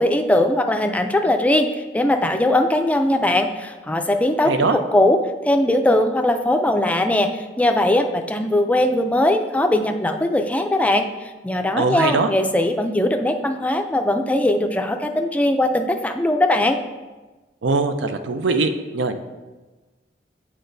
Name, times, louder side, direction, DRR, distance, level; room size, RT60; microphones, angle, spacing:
voice 1, 0.0-16.8, left 1 dB, 10° left, 6 dB, 0.3 m, -20 dB
voice 2, 4.5-4.8 11.8-12.3 17.6-19.2, right 3 dB, 90° right, 8 dB, 0.5 m, -21 dB
8.5 x 4.4 x 2.6 m, 1.2 s
head